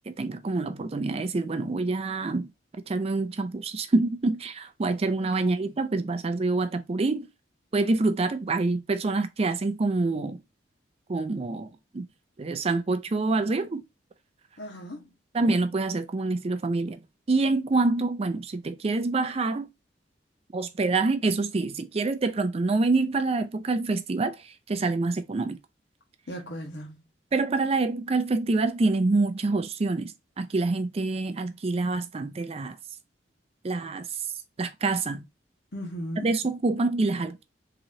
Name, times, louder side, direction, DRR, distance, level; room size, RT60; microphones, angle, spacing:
voice 1, 0.1-2.5 2.9-7.3 7.7-10.4 11.1-12.1 12.4-13.8 15.3-17.0 17.3-19.7 20.5-25.6 27.3-32.8 33.6-34.1 34.6-35.2 36.2-37.4, right 3 dB, 35° right, 0.4 m, -26 dB
voice 2, 5.2-5.5 14.6-15.1 26.3-27.0 35.7-36.3, equal, 65° left, 1.3 m, -37 dB
3.8 x 3.1 x 2.7 m
head